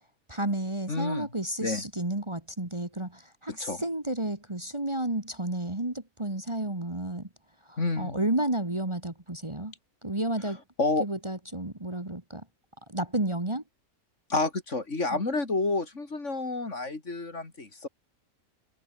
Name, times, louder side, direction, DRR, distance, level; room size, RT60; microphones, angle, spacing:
voice 1, 0.3-7.3 7.7-9.7 10.0-10.6 11.0-12.4 12.9-13.6 15.1-15.2, right 1 dB, 20° right, 2.2 m, -31 dB
voice 2, 0.9-1.3 1.6-1.8 3.5-3.8 7.8-8.2 10.8-11.0 14.3-17.9, left 3 dB, 55° left, 3.5 m, -29 dB
omnidirectional pair, 1.5 m